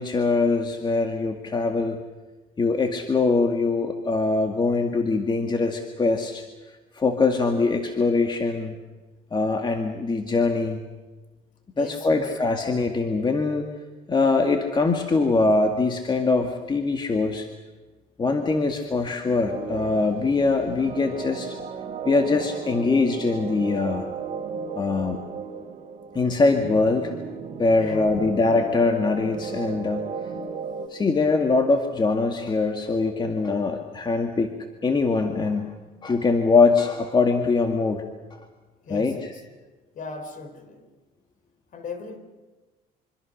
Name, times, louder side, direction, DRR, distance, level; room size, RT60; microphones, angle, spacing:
voice 1, 0.0-2.0 2.6-6.4 6.9-8.8 9.3-10.8 11.8-13.7 14.1-17.5 18.2-21.6 22.0-24.1 24.7-25.2 26.1-27.1 27.6-30.1 30.9-34.5 34.8-35.8 36.0-38.0 38.3-38.4 38.9-39.3, left 3 dB, 25° left, 4 dB, 2.1 m, -22 dB
voice 2, 11.8-12.4 27.8-28.2 38.9-39.4 39.9-40.9 41.7-42.2, left 4 dB, 50° left, 9 dB, 4.2 m, -38 dB
sound 1, 19.4-30.9, right 6 dB, 45° right, 3.2 m, -35 dB
26.0 x 25.5 x 6.6 m, 1.2 s
cardioid pair, 110°, 17 cm